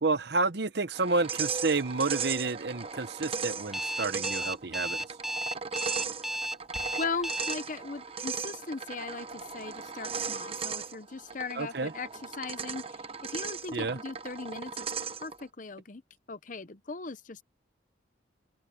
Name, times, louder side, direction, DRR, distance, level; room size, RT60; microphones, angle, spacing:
voice 1, 0.0-5.0 11.6-11.9 13.7-14.0, right 3 dB, 60° right, 0.9 m, -30 dB
sound 1, 0.9-15.4, right 6 dB, 30° right, 0.8 m, -37 dB
Alarm, 3.7-7.5, right 1 dB, ahead, 0.3 m, -33 dB
sound 2, 6.3-7.3, left 1 dB, 75° left, 2.2 m, -50 dB
voice 2, 7.0-16.0 16.3-17.4, left 4 dB, 45° left, 0.8 m, -38 dB
open air
head